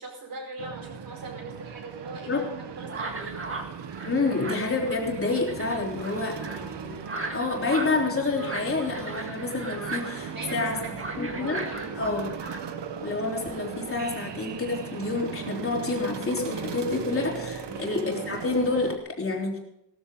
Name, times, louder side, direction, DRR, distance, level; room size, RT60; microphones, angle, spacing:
voice 1, 0.0-2.4 2.8-3.5 6.0-6.7 10.3-12.0 17.7-17.8, right 2 dB, 55° right, 2 dB, 4.8 m, -41 dB
sound 1, 0.6-19.0, right 7 dB, 75° right, 1.4 m, -38 dB
sound 2, 2.9-12.6, right 3 dB, 30° right, 1.8 m, -37 dB
voice 2, 4.0-7.0 7.3-10.8 11.2-11.7 12.0-12.3 13.0-19.6, left 3 dB, 30° left, 0 dB, 3.5 m, -28 dB
17.0 x 14.0 x 3.8 m, 0.82 s
wide cardioid pair, 170°, 43 cm